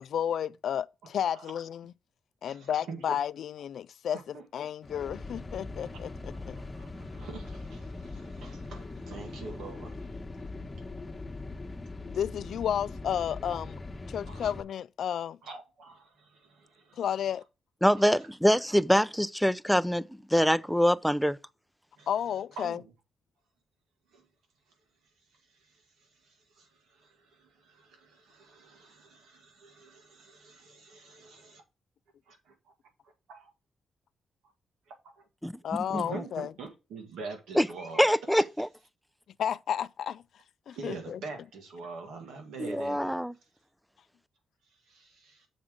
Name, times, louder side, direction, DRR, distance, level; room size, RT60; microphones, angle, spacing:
voice 1, 0.0-1.9 2.4-6.6 12.1-13.8 14.1-15.4 17.0-17.4 22.1-22.8 35.6-36.5 39.4-40.2 40.7-41.2, left 9 dB, 75° left, 0.3 m, -32 dB
voice 2, 2.4-3.0 4.3-4.4 6.6-10.0 14.3-14.5 15.4-16.3 16.6-17.0 18.0-18.1 22.0-22.1 22.6-22.9 24.1-24.2 26.6-26.7 27.7-31.6 32.3-32.4 33.3-33.5 35.9-38.0 40.7-43.1 44.9-45.4, right 4 dB, 90° right, 2.0 m, -44 dB
sound 1, 4.8-14.6, left 3 dB, 25° left, 1.1 m, -41 dB
voice 3, 17.8-21.3 35.4-35.5 35.9-36.2 37.5-37.7 37.9-38.7 42.6-43.3, equal, ahead, 0.5 m, -24 dB
7.1 x 3.7 x 6.4 m
cardioid pair, 80°, 0 cm